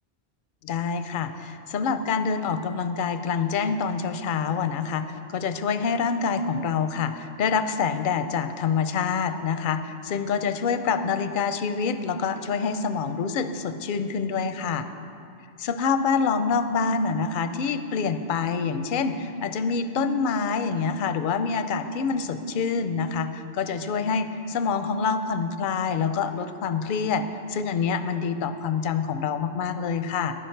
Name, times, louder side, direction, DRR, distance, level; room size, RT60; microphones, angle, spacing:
voice 1, 0.6-14.9 15.6-27.2 27.5-30.3, left 5 dB, 55° left, 10 dB, 0.6 m, -26 dB
11.0 x 10.5 x 4.5 m, 2.5 s
omnidirectional pair, 1.2 m